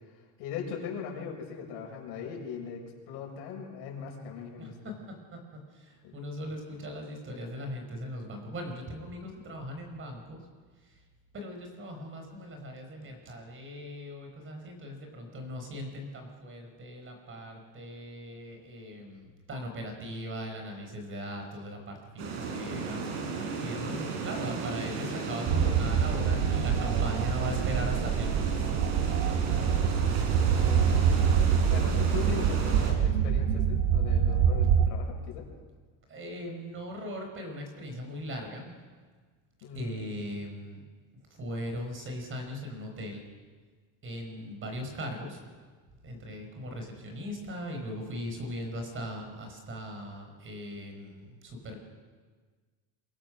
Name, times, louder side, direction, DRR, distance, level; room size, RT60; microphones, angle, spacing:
voice 1, 0.4-5.0 6.0-6.1 30.5-30.9 31.7-35.4 39.6-39.9, left 6 dB, 70° left, 0 dB, 6.5 m, -39 dB
voice 2, 4.6-5.4 5.7-10.4 11.3-28.5 29.3-29.9 36.1-38.7 39.7-40.8 41.4-43.2 44.0-45.4 46.0-51.8, equal, 30° right, 4 dB, 5.0 m, -39 dB
sound 1, 22.2-32.9, right 4 dB, 90° right, 5.7 m, -35 dB
sound 2, 25.5-34.9, right 7 dB, 65° right, 3.5 m, -25 dB
26.5 x 23.5 x 6.3 m, 1.5 s
cardioid pair, 165°, 42 cm